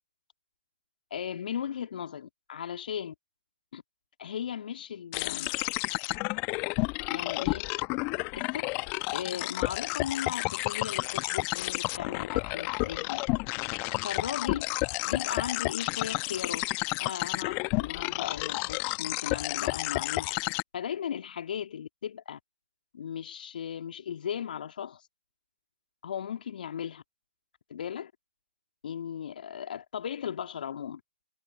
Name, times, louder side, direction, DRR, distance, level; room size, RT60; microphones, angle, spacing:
voice 1, 1.1-3.1 3.7-3.8 4.2-5.5 6.7-7.7 8.4-8.7 9.1-13.2 14.0-14.7 15.0-16.7 17.0-20.3 20.7-22.4 22.9-25.1 26.0-27.0 27.7-28.1 28.8-31.0, left 8 dB, 55° left, 2.4 m, -37 dB
sound 1, 5.1-20.6, left 29 dB, 30° left, 0.9 m, -31 dB
figure-of-eight pair, 125°, 6 cm